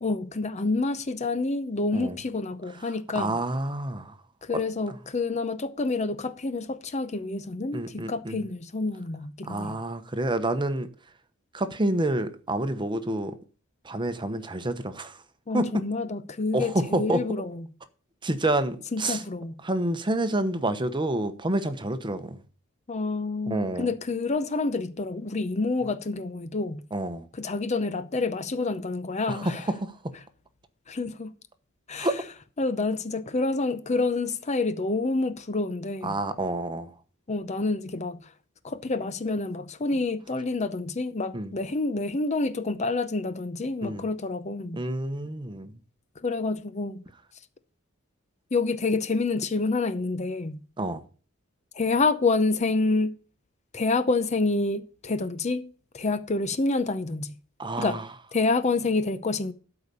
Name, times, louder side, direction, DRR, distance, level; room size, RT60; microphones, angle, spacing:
voice 1, 0.0-3.3 4.4-9.8 15.5-17.7 18.9-19.5 22.9-26.8 27.3-29.7 30.9-31.3 31.9-32.1 32.6-36.1 37.3-38.2 38.6-44.8 46.2-47.0 48.5-50.6 51.7-53.2 53.7-55.7 55.9-57.3 57.8-58.0 58.3-59.5, left 3 dB, 35° left, 0.7 m, -28 dB
voice 2, 3.1-4.1 7.7-8.4 9.4-10.9 11.5-13.3 13.8-15.2 15.5-15.7 16.5-17.2 18.2-19.2 19.6-22.4 23.5-23.9 26.9-27.2 29.3-30.1 32.0-32.2 36.0-36.9 41.3-41.5 43.8-44.0 44.7-45.7 50.8-51.0 57.6-58.0, right 1 dB, 25° right, 0.9 m, -28 dB
12.5 x 5.0 x 6.8 m
head